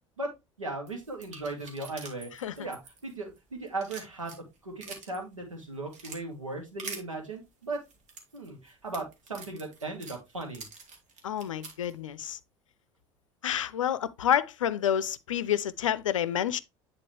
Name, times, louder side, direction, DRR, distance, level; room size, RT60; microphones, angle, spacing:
voice 1, 0.6-4.3 4.6-7.8 8.3-10.7, right 2 dB, 85° right, 2.0 m, -37 dB
sound 1, 0.9-3.4 3.7-5.2 5.6-6.2 6.8-7.0 7.7-11.9, right 4 dB, 45° right, 2.1 m, -45 dB
voice 2, 11.2-12.4 13.4-16.6, left 10 dB, 80° left, 0.5 m, -28 dB
9.8 x 3.8 x 3.2 m
figure-of-eight pair, 70°, 16 cm